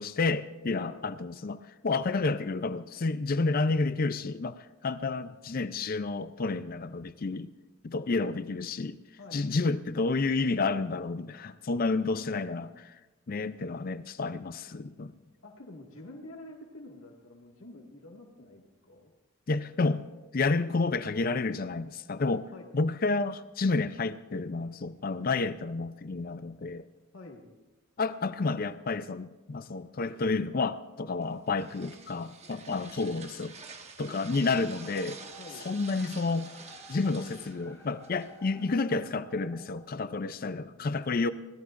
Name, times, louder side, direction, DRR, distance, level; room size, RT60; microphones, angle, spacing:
voice 1, 0.0-7.5 7.8-9.0 9.3-12.7 13.3-15.1 19.5-20.0 20.3-26.9 28.0-33.5 34.0-35.2 35.6-36.5 36.9-41.3, left 3 dB, 45° left, 12 dB, 0.5 m, -30 dB
voice 2, 9.2-9.5 11.8-12.7 15.4-19.1 20.5-20.8 22.5-22.7 27.1-27.5 34.0-34.2 35.4-35.7 40.0-41.1, left 2 dB, 85° left, -1 dB, 1.9 m, -49 dB
sound 1, 31.2-38.7, right 4 dB, 35° right, 1.1 m, -48 dB
sound 2, 34.4-40.4, left 2 dB, 15° left, 2.1 m, -53 dB
25.0 x 17.5 x 2.5 m, 1.1 s
head